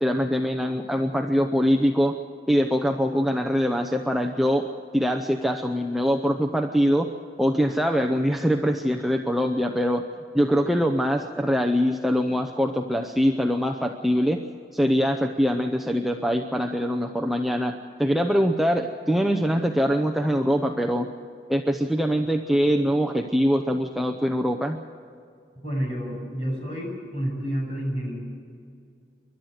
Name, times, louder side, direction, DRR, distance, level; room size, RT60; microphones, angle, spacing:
voice 1, 0.0-2.2 2.5-4.7 4.9-7.1 7.4-10.0 10.3-14.4 14.7-21.1 21.5-24.8, equal, ahead, 3 dB, 0.7 m, -23 dB
voice 2, 25.6-28.1, equal, 35° left, -1 dB, 7.1 m, -29 dB
28.5 x 12.0 x 7.9 m, 2.4 s
head